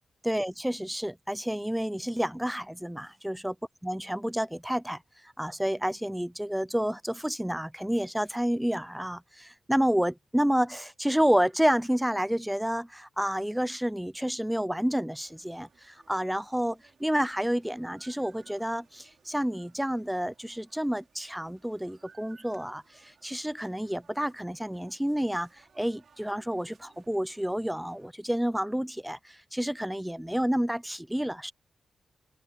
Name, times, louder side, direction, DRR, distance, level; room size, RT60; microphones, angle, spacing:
voice 1, 0.2-3.6 3.8-5.0 5.4-25.5 25.8-31.5, equal, 5° right, 0.4 m, -29 dB
sound 1, 15.1-28.1, right 6 dB, 50° right, 5.0 m, -62 dB
open air
wide cardioid pair, 130°, 0 cm